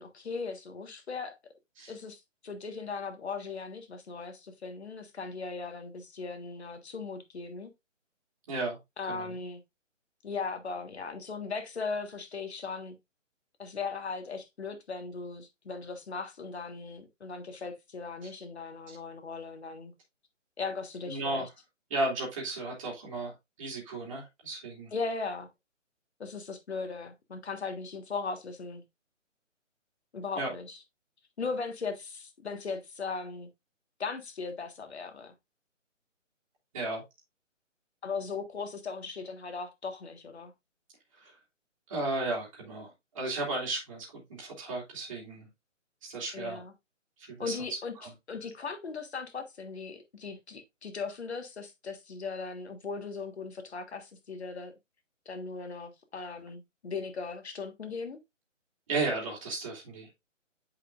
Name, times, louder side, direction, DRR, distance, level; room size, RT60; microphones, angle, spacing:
voice 1, 0.0-1.4 1.9-7.7 9.0-9.6 10.2-13.0 13.6-19.9 20.6-21.5 24.9-25.5 26.2-28.8 30.1-30.8 31.4-33.5 34.0-35.3 38.0-40.5 46.3-46.7 47.4-47.9 48.3-54.8 55.2-58.2, left 4 dB, 55° left, 1.6 m, -38 dB
voice 2, 8.5-8.8 9.1-9.3 21.1-21.5 21.9-24.9 30.4-30.5 36.7-37.0 41.2-41.3 41.9-45.5 46.0-46.6 47.2-47.5 48.0-48.1 58.9-60.1, right 2 dB, 25° right, 2.6 m, -34 dB
8.2 x 5.2 x 2.5 m
hypercardioid pair, 170°, 38 cm